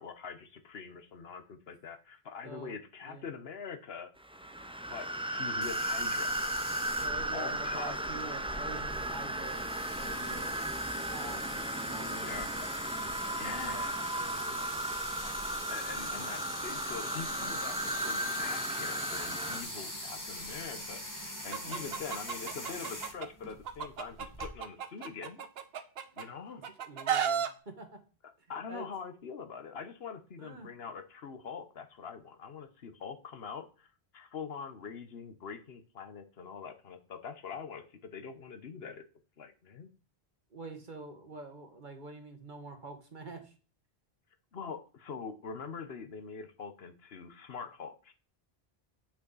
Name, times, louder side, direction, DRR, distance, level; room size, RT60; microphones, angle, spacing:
voice 1, 0.0-4.1 4.9-6.4 7.3-8.0 12.1-12.7 13.4-13.9 15.7-25.5 26.2-26.6 28.5-39.0 39.4-39.9 44.5-48.1, left 6 dB, 70° left, 8 dB, 1.2 m, -44 dB
voice 2, 2.4-2.8 3.0-3.2 7.0-9.7 10.0-10.5 11.1-12.5 13.3-14.9 16.0-16.5 21.6-22.1 26.9-28.0 28.4-28.9 30.4-30.7 40.5-43.5, right 3 dB, 50° right, 6 dB, 1.6 m, -47 dB
sound 1, 4.2-19.6, right 1 dB, 10° right, 0.3 m, -35 dB
sound 2, 5.6-24.5, left 1 dB, 20° left, 1.5 m, -43 dB
Chicken rooster, 21.5-23.3 23.7-26.2 26.6-27.5, right 8 dB, 70° right, 1.0 m, -33 dB
8.3 x 6.2 x 4.0 m, 0.37 s
omnidirectional pair, 1.1 m